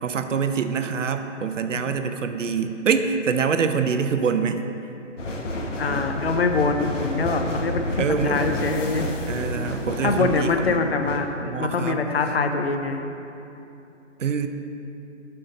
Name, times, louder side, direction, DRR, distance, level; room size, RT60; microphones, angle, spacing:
voice 1, 0.0-4.6 8.0-8.5 9.3-10.8 11.4-12.1 14.2-14.5, right 6 dB, 80° right, 8 dB, 0.6 m, -25 dB
sound 1, 5.2-11.2, left 1 dB, 75° left, 1.0 m, -30 dB
voice 2, 5.8-9.1 10.0-11.3 11.6-13.0, left 4 dB, 55° left, 6 dB, 0.6 m, -24 dB
7.3 x 5.7 x 4.0 m, 2.8 s
hypercardioid pair, 155°, 38 cm